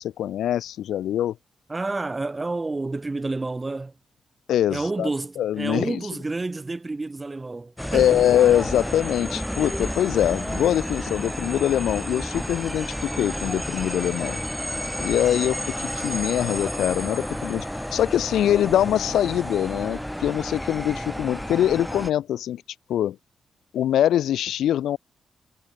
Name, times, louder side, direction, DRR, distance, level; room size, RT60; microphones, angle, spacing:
voice 1, 0.0-1.4 4.5-5.1 5.4-6.0 7.9-14.4 15.0-22.6 22.9-23.2 23.7-25.0, left 11 dB, 85° left, 1.0 m, -23 dB
voice 2, 1.7-3.9 4.7-8.2, right 3 dB, 30° right, 5.0 m, -29 dB
sound 1, 7.8-22.1, equal, 5° left, 1.9 m, -31 dB
cardioid pair, 60°, 0 cm